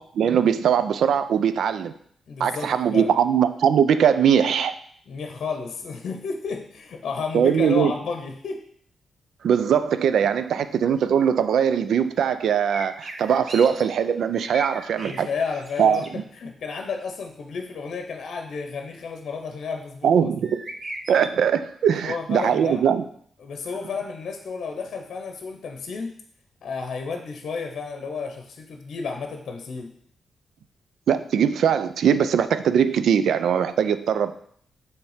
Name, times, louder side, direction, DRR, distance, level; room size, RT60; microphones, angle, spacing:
voice 1, 0.0-1.9 2.4-4.7 7.3-7.9 9.4-15.3 15.8-16.0 20.0-20.6 21.1-23.0 31.1-34.3, right 8 dB, 80° right, 12 dB, 0.4 m, -21 dB
voice 2, 2.3-3.1 5.1-8.6 15.0-20.2 22.0-22.9 23.4-26.2 26.6-29.9, left 5 dB, 70° left, 4 dB, 0.7 m, -32 dB
sound 1, 12.7-13.8 14.2-15.3 15.6-16.1 20.4-21.3, right 1 dB, 35° right, 1.0 m, -37 dB
6.9 x 3.4 x 5.0 m, 0.63 s
cardioid pair, 60°, 0 cm